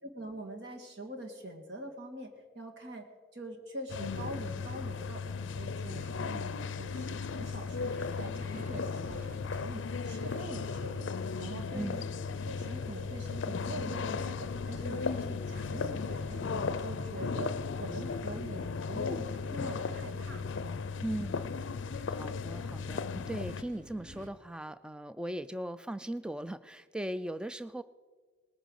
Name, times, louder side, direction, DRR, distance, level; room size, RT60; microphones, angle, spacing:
voice 1, 0.0-3.1 3.3-11.1 11.4-12.1 12.5-20.8, right 1 dB, 60° right, 4 dB, 2.0 m, -44 dB
sound 1, 3.9-23.6, left 5 dB, 70° left, 0.5 m, -36 dB
sound 2, 5.9-24.3, right 1 dB, 40° right, 1.2 m, -51 dB
voice 2, 21.0-21.5 22.1-27.8, right 1 dB, 5° right, 13 dB, 0.3 m, -38 dB
19.0 x 9.2 x 6.4 m, 1.5 s
head